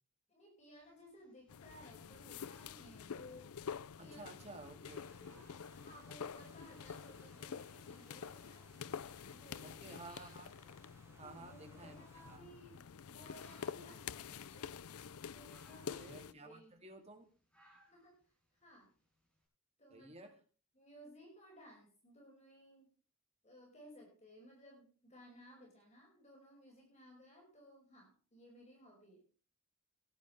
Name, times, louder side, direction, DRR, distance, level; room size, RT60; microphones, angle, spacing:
voice 1, 0.3-3.5 4.0-4.8 5.7-8.9 9.3-9.7 11.0-14.8 15.3-16.7 17.8-18.2 18.5-18.9 19.8-20.3 20.7-22.9 23.4-29.2, equal, 30° left, 0 dB, 5.5 m, -59 dB
sound 1, 0.7-19.4, right 1 dB, 5° left, 6.7 m, -72 dB
sound 2, 1.5-16.3, left 7 dB, 80° left, 0.5 m, -48 dB
voice 2, 4.0-5.5 9.6-10.5 11.2-12.4 15.8-17.3 19.9-20.3, right 2 dB, 30° right, 4 dB, 2.4 m, -54 dB
sound 3, 4.8-12.4, right 2 dB, 10° right, 2.4 m, -67 dB
17.5 x 11.5 x 3.3 m, 0.38 s
head